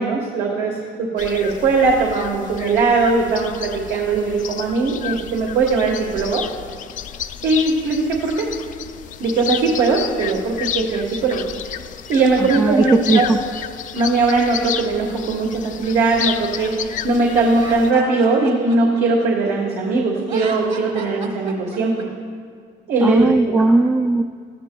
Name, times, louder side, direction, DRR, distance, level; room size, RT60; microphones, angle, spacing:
voice 1, 0.0-6.4 7.4-8.5 9.2-11.5 12.1-13.3 13.9-22.1 22.9-23.3, right 3 dB, 70° right, -1 dB, 1.4 m, -19 dB
sound 1, 1.2-17.9, left 9 dB, 50° left, 0.4 m, -31 dB
voice 2, 12.4-13.4 23.0-24.2, right 2 dB, 15° right, 5 dB, 0.3 m, -17 dB
Laughter, 17.5-19.8 20.2-22.0, right 4 dB, 45° right, 1.6 m, -36 dB
18.0 x 13.5 x 2.3 m, 2.1 s
cardioid pair, 110°, 17 cm